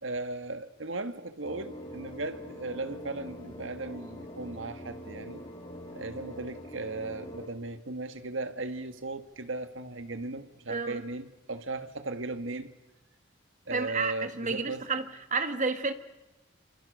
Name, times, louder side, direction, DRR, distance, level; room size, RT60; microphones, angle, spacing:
voice 1, 0.0-5.4 5.9-12.7 13.7-14.9, right 2 dB, 75° right, 1.7 m, -37 dB
sound 1, 1.4-7.5, equal, 30° left, 3.3 m, -44 dB
voice 2, 10.7-11.1 13.7-15.9, right 4 dB, 40° right, 1.7 m, -31 dB
28.0 x 26.5 x 6.6 m
head